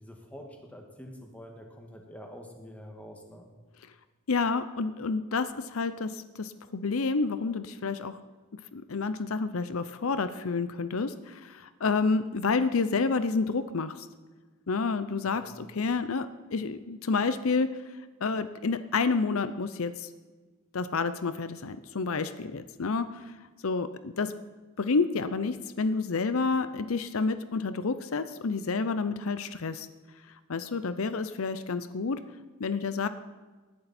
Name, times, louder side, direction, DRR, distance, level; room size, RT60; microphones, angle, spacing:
voice 1, 0.0-3.5 15.4-15.6, equal, 5° left, 2 dB, 1.8 m, -46 dB
voice 2, 4.3-8.1 8.7-14.1 14.7-17.7 18.2-20.1 20.7-23.3 23.6-24.3 24.8-29.9 30.5-32.2 32.6-33.1, left 4 dB, 75° left, 12 dB, 0.7 m, -29 dB
19.0 x 11.0 x 4.3 m, 1.3 s
head